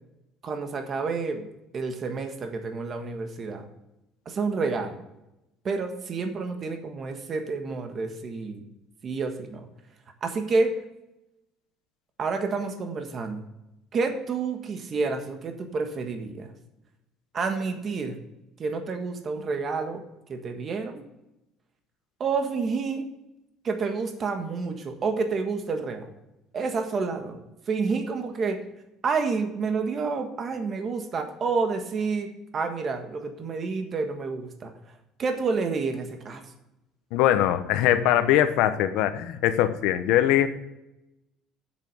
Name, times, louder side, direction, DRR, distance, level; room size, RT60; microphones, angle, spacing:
voice 1, 0.4-1.5 1.7-3.7 4.2-5.0 5.6-8.6 9.0-9.7 10.2-10.8 12.2-13.5 13.9-16.5 17.3-18.2 18.6-20.0 20.3-21.0 22.2-23.1 23.6-26.1 26.5-27.4 27.7-28.6 29.0-34.7 35.2-36.4, right 4 dB, 30° right, 5 dB, 1.5 m, -29 dB
voice 2, 37.1-40.5, left 12 dB, 80° left, 10 dB, 0.9 m, -22 dB
7.7 x 7.6 x 6.6 m, 0.91 s
cardioid pair, 150°, 0 cm